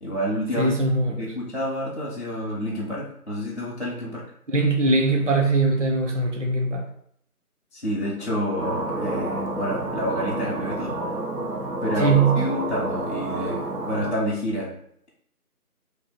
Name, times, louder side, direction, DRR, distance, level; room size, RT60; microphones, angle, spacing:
voice 1, 0.0-0.7 1.1-4.2 7.7-11.1 11.8-14.7, equal, 45° left, -6 dB, 0.6 m, -29 dB
voice 2, 0.6-1.3 4.5-6.9 12.0-12.4, right 3 dB, 55° right, 2 dB, 0.5 m, -21 dB
sound 1, 8.6-14.1, right 2 dB, 85° right, 0.8 m, -29 dB
2.7 x 2.1 x 3.7 m, 0.69 s
figure-of-eight pair, 175°, 47 cm